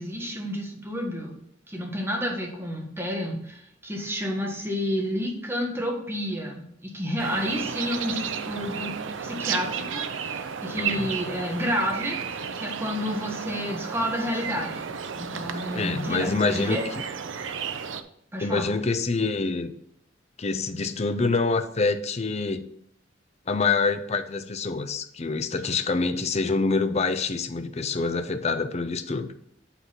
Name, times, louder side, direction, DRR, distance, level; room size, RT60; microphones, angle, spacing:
voice 1, 0.0-1.4 1.7-16.3 16.6-16.8 18.3-18.7, equal, 15° right, 1.6 m, -30 dB
sound 1, 7.2-18.0, right 6 dB, 85° right, 0.6 m, -33 dB
voice 2, 10.8-11.1 15.5-16.8 18.4-19.7 20.4-22.6 23.5-29.3, left 4 dB, 35° left, 0.6 m, -26 dB
8.0 x 4.0 x 5.9 m
head